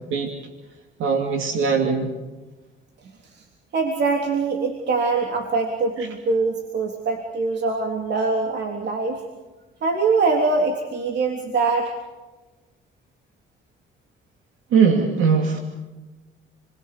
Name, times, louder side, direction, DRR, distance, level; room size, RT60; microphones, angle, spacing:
voice 1, 1.0-2.1 14.7-15.6, right 5 dB, 85° right, 3 dB, 2.7 m, -20 dB
voice 2, 3.7-9.2 9.8-12.0, right 4 dB, 60° right, 2 dB, 3.5 m, -23 dB
30.0 x 22.0 x 6.9 m, 1.2 s
cardioid pair, 90°, 20 cm